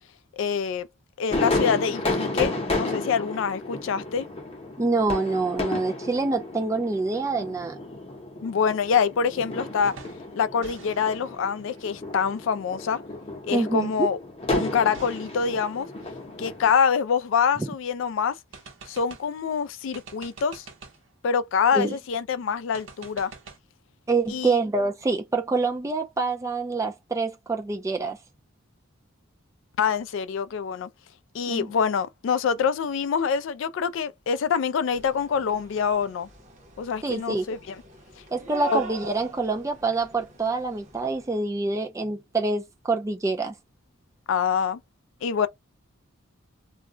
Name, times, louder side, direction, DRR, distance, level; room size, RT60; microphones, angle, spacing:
voice 1, 0.4-0.9 1.2-4.3 8.4-9.9 10.4-13.0 13.4-14.2 14.5-15.9 16.4-18.4 18.9-20.7 21.2-23.3 24.3-24.6 29.8-30.9 31.3-36.3 36.8-37.6 38.7-38.8 44.3-44.8 45.2-45.5, left 6 dB, 65° left, 0.3 m, -25 dB
sound 1, 1.3-16.7, left 2 dB, 30° left, 0.7 m, -32 dB
voice 2, 4.8-7.8 13.5-14.1 17.6-17.7 21.7-22.0 24.1-28.2 31.5-31.7 37.0-37.5 38.3-43.5, right 3 dB, 15° right, 0.3 m, -26 dB
sound 2, 9.8-10.3 10.6-13.2 14.9-17.7 18.0-18.1 18.5-19.4 19.9-21.1 22.7-23.6, right 4 dB, 70° right, 0.8 m, -48 dB
sound 3, 34.9-41.4, right 3 dB, 35° right, 0.7 m, -43 dB
2.3 x 2.1 x 3.7 m
head